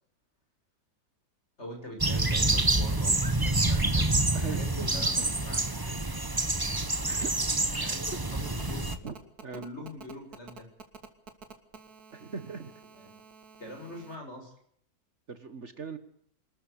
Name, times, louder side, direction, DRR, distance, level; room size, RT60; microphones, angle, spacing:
voice 1, 1.6-4.1 4.4-5.9 7.8-9.0 9.5-10.7 12.9-13.1 13.6-14.5, left 1 dB, 45° left, 3 dB, 7.4 m, -44 dB
sound 1, 2.0-9.0, right 2 dB, 15° right, 1.1 m, -27 dB
voice 2, 4.3-5.2 7.0-7.3 7.8-8.2 9.0-9.1 9.4-9.6 12.1-12.7 15.3-16.0, right 5 dB, 50° right, 11 dB, 1.7 m, -39 dB
Telephone, 8.5-14.2, right 5 dB, 85° right, 2.7 m, -49 dB
25.0 x 13.5 x 8.6 m, 0.67 s
omnidirectional pair, 1.6 m